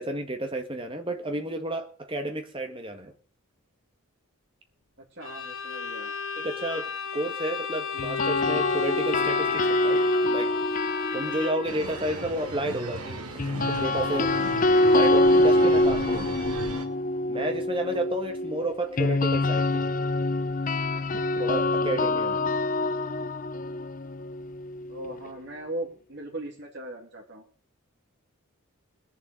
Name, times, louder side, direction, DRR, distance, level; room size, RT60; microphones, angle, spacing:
voice 1, 0.0-3.1 6.4-10.0 10.3-10.5 11.1-13.2 13.7-14.3 14.9-16.4 17.3-19.8 21.3-22.4, right 1 dB, 25° right, 6 dB, 1.7 m, -31 dB
Bowed string instrument, 5.2-11.8, left 6 dB, 70° left, 1.3 m, -33 dB
voice 2, 5.2-6.1 24.9-27.4, right 1 dB, 50° right, 0 dB, 2.7 m, -38 dB
sound 1, 8.0-12.2 13.4-25.3, left 2 dB, 35° left, 0.5 m, -25 dB
sound 2, 11.6-16.8, right 2 dB, 85° right, 2.4 m, -37 dB
20.5 x 7.2 x 6.5 m, 0.43 s
head